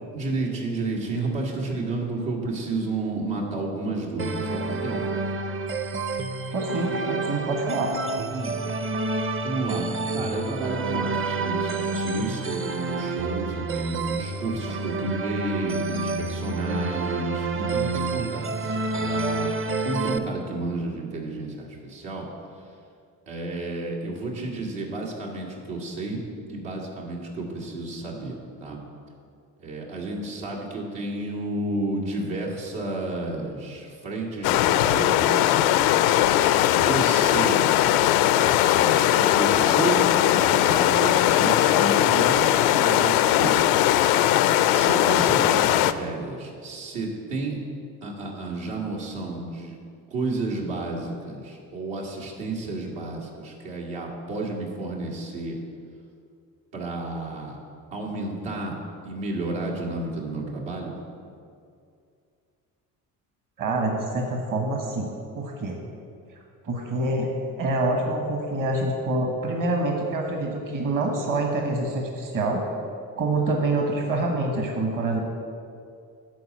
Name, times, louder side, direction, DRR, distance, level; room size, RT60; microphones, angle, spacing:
voice 1, 0.1-5.0 8.3-8.6 9.1-19.5 19.8-22.3 23.3-26.2 26.5-28.8 29.6-35.8 36.7-37.6 38.4-43.9 44.7-47.6 48.0-49.8 50.1-55.6 56.7-57.6 57.9-58.8 59.0-60.9, right 2 dB, 75° right, -3 dB, 1.8 m, -31 dB
sound 1, 4.2-20.2, right 3 dB, 30° right, 0.7 m, -28 dB
voice 2, 6.5-7.9 63.6-65.1 65.3-65.8 66.6-67.3 67.6-72.7 73.2-75.2, right 2 dB, 45° right, 2 dB, 1.4 m, -26 dB
sound 2, 34.4-45.9, left 12 dB, 75° left, 0.5 m, -19 dB
9.9 x 4.1 x 7.5 m, 2.4 s
hypercardioid pair, 55°, 45 cm